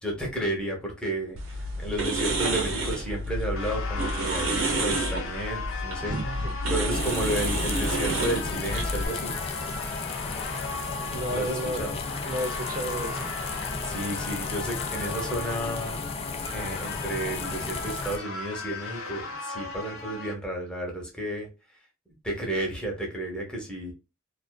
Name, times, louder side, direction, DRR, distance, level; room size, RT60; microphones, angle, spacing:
voice 1, 0.0-6.1 6.7-9.4 11.3-12.0 13.8-16.2 16.5-21.5 22.2-23.9, right 1 dB, 5° left, -1 dB, 0.8 m, -32 dB
sound 1, 1.4-9.1, right 1 dB, 70° right, 0.7 m, -29 dB
sound 2, 3.6-20.3, left 3 dB, 70° left, 0.7 m, -37 dB
voice 2, 6.0-6.5 11.1-11.9 12.2-13.3, right 1 dB, 40° right, 4 dB, 0.4 m, -32 dB
sound 3, 6.9-18.2, left 4 dB, 30° left, 0.3 m, -34 dB
2.4 x 2.3 x 2.2 m, 0.29 s
head